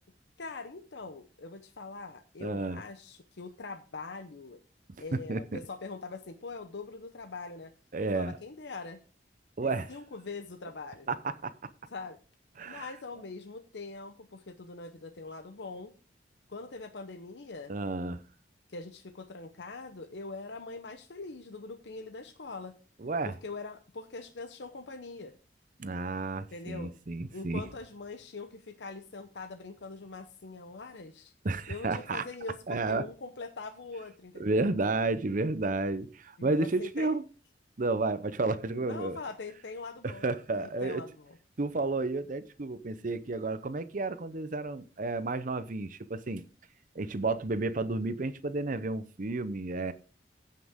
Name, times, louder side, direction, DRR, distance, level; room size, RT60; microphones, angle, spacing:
voice 1, 0.4-4.6 5.0-7.7 8.1-9.0 9.6-11.1 11.9-12.2 12.7-15.9 16.5-17.7 18.7-22.7 23.2-25.4 26.5-26.9 27.3-31.3 31.7-34.7 36.4-37.2 38.8-40.3 40.6-41.3, left 3 dB, 80° left, 0.8 m, -43 dB
voice 2, 2.4-2.8 5.1-5.6 7.9-8.4 9.6-9.9 11.1-11.5 12.6-12.9 17.7-18.2 23.0-23.3 25.8-27.6 31.4-32.2 32.7-33.1 34.4-37.2 37.8-39.2 40.0-41.0 41.6-46.4 46.9-49.9, right 3 dB, 50° right, 0.7 m, -31 dB
16.0 x 5.8 x 3.6 m
head